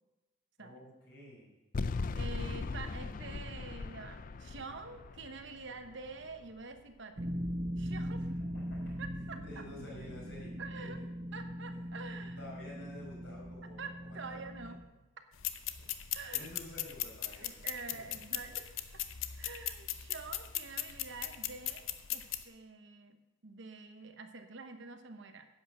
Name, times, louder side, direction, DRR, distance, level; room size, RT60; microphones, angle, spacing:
voice 1, 0.6-1.5 8.5-9.0 9.5-10.9 12.4-14.4 16.3-18.0, left 1 dB, 55° left, -3 dB, 4.7 m, -50 dB
sound 1, 1.7-6.9, left 4 dB, 40° left, 0.4 m, -39 dB
voice 2, 2.1-7.3 7.8-8.3 9.0-9.7 10.6-11.0 11.3-12.4 13.8-14.8 16.1-16.5 17.4-19.0 19.3-23.2 23.4-25.5, right 4 dB, 60° right, 8 dB, 1.0 m, -47 dB
sound 2, 7.2-14.8, equal, 30° right, 0.9 m, -40 dB
sound 3, 15.3-22.4, left 12 dB, 75° left, 0.7 m, -39 dB
10.5 x 8.9 x 6.2 m, 1.1 s
head